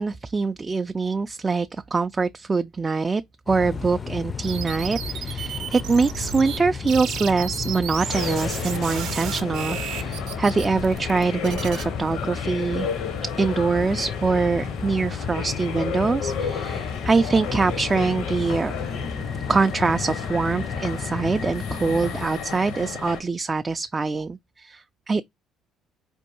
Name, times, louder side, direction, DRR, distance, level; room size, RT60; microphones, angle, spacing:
voice 1, 0.0-12.9 13.4-18.7 19.5-25.2, right 4 dB, 30° right, 0.3 m, -24 dB
sound 1, 3.5-22.2, left 5 dB, 40° left, 0.4 m, -33 dB
sound 2, 4.4-6.6 6.9-11.8, right 9 dB, 70° right, 0.6 m, -34 dB
sound 3, 8.1-23.2, left 7 dB, 75° left, 0.7 m, -33 dB
4.4 x 2.6 x 2.9 m
hypercardioid pair, 55°, 0 cm